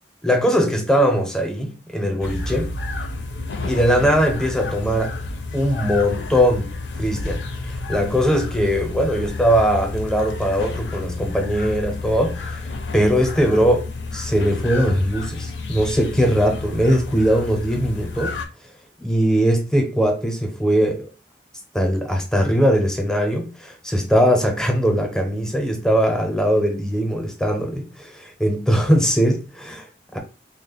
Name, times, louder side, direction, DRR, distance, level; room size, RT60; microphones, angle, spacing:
voice 1, 0.2-2.7 3.6-5.1 5.5-12.7 12.9-13.9 14.1-18.4 19.0-21.1 21.7-30.2, equal, 5° left, 0.7 m, -20 dB
sound 1, 2.2-18.5, left 3 dB, 80° left, 0.6 m, -30 dB
3.2 x 2.1 x 4.0 m
head